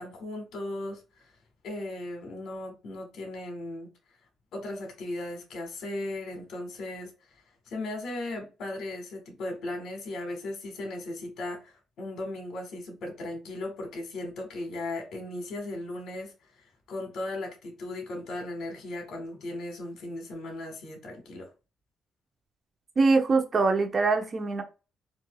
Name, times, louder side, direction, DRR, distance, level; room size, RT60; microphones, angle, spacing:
voice 1, 0.0-1.3 1.6-3.9 4.5-21.5, left 2 dB, 70° left, 1.3 m, -37 dB
voice 2, 23.0-24.6, right 3 dB, 35° right, 0.8 m, -23 dB
4.1 x 2.6 x 2.2 m
cardioid pair, 90°, 0 cm